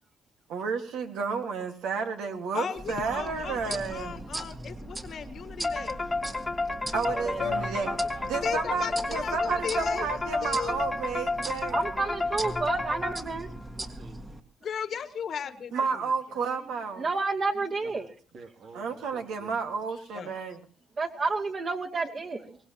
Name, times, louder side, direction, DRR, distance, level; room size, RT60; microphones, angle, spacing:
voice 1, 0.5-4.1 6.9-7.9 8.3-11.8 15.7-17.1 18.7-20.6, right 5 dB, 85° right, 5 dB, 1.8 m, -31 dB
voice 2, 2.5-6.1 7.4-7.6 8.4-10.1 10.4-10.8 14.6-16.0 16.3-16.4 20.1-20.3, left 7 dB, 60° left, 11 dB, 1.4 m, -36 dB
sound 1, 2.8-14.4, right 1 dB, 25° right, 1.7 m, -40 dB
sound 2, 5.6-13.5, left 3 dB, 20° left, 1.3 m, -31 dB
voice 3, 7.0-8.8 13.8-14.2 17.8-17.9 18.3-19.6, right 3 dB, 65° right, 3 dB, 2.8 m, -46 dB
voice 4, 11.7-13.7 17.0-18.1 21.0-22.6, right 3 dB, 45° right, 1 dB, 2.5 m, -30 dB
24.0 x 19.0 x 3.0 m, 0.41 s
cardioid pair, 90°, 0 cm